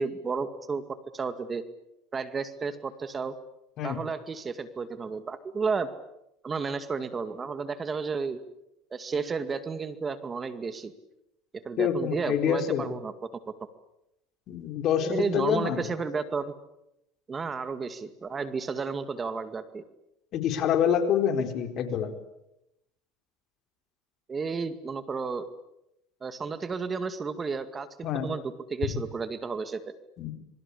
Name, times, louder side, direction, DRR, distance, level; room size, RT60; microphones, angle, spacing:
voice 1, 0.0-1.6 2.1-3.4 3.8-5.9 6.4-8.4 8.9-10.9 11.5-13.1 15.0-16.4 17.3-19.8 24.3-25.5 26.2-28.4 28.7-29.9, right 5 dB, 25° right, 11 dB, 2.1 m, -32 dB
voice 2, 11.8-12.9 14.5-15.8 20.3-22.1 28.0-28.3 30.2-30.3, left 8 dB, 50° left, 7 dB, 4.3 m, -26 dB
26.5 x 24.0 x 8.5 m, 0.84 s
supercardioid pair, 95°, 0 cm